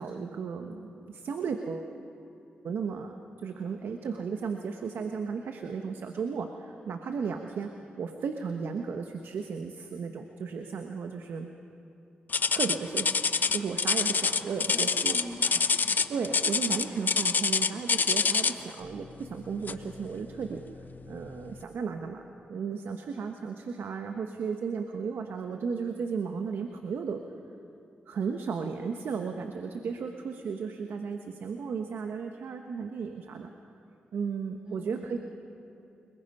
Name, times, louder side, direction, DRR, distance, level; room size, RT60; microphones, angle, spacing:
voice 1, 0.0-1.9 2.6-3.2 3.4-7.7 8.0-11.5 12.5-13.2 13.5-15.2 16.1-20.6 21.1-22.2 22.5-27.2 28.1-33.5 34.1-35.2, right 5 dB, 75° right, 5 dB, 1.1 m, -34 dB
sound 1, 12.3-18.7 19.7-19.9 20.5-20.6 21.3-21.4, left 5 dB, 50° left, 0.8 m, -26 dB
voice 2, 14.7-16.4 16.7-17.0 34.6-35.2, equal, 25° right, 0 dB, 6.3 m, -44 dB
28.5 x 20.5 x 5.5 m, 2.8 s
cardioid pair, 55°, 4 cm